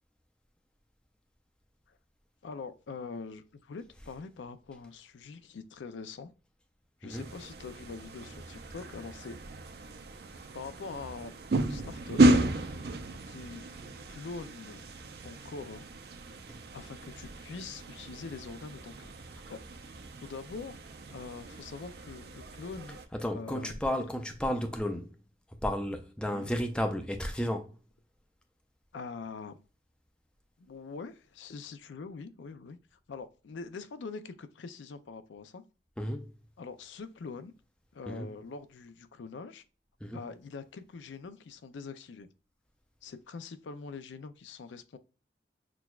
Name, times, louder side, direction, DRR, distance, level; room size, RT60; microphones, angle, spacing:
voice 1, 2.4-6.3 7.0-9.4 10.5-11.3 11.6-12.2 13.2-13.6 14.1-14.8 15.2-15.9 16.7-19.6 20.2-20.8 21.1-23.0 23.3-23.8 26.3-26.5 28.9-29.6 30.6-32.8 33.1-35.6 36.6-37.5 37.9-39.6 40.1-42.3 43.0-45.0, left 4 dB, 85° left, 0.4 m, -43 dB
sound 1, 7.1-23.1, right 2 dB, 60° right, 0.4 m, -33 dB
voice 2, 23.1-25.1 25.6-27.7 36.0-36.2 38.1-38.3 40.0-40.2, equal, 5° left, 0.4 m, -33 dB
6.0 x 2.2 x 2.3 m
head